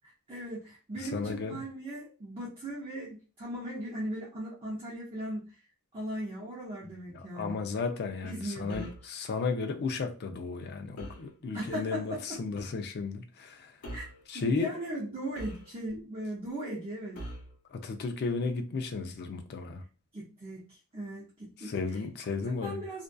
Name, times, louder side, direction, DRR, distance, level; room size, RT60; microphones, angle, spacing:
voice 1, 0.3-5.6 5.9-7.6 8.2-8.9 11.5-12.4 13.9-14.0 14.3-17.2 20.1-21.7 22.6-23.0, equal, 25° right, 0.6 m, -38 dB
voice 2, 1.0-1.6 7.1-13.8 14.3-14.7 17.7-19.8 21.6-22.8, left 4 dB, 45° left, 0.4 m, -34 dB
sound 1, 8.7-9.1 11.0-11.3 12.6-12.8 13.8-14.2 15.3-16.0 17.1-17.6, right 1 dB, 85° left, 0.9 m, -43 dB
2.6 x 2.3 x 2.2 m
head